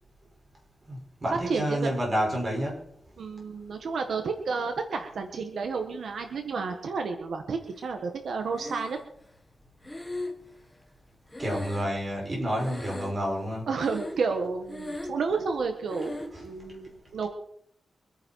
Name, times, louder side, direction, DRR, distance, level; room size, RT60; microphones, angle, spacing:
voice 1, 0.9-2.8 11.4-13.7 16.3-16.5, equal, 30° right, -2 dB, 6.4 m, -29 dB
voice 2, 1.5-1.9 3.2-9.0 13.7-17.3, right 4 dB, 85° right, 5 dB, 1.6 m, -31 dB
Breathing, 8.5-9.3 9.8-12.3 12.6-13.4 13.8-14.4 14.6-15.3 15.9-16.4, left 1 dB, 10° left, 1.5 m, -38 dB
25.0 x 9.9 x 4.8 m, 0.69 s
wide cardioid pair, 160°, 0 cm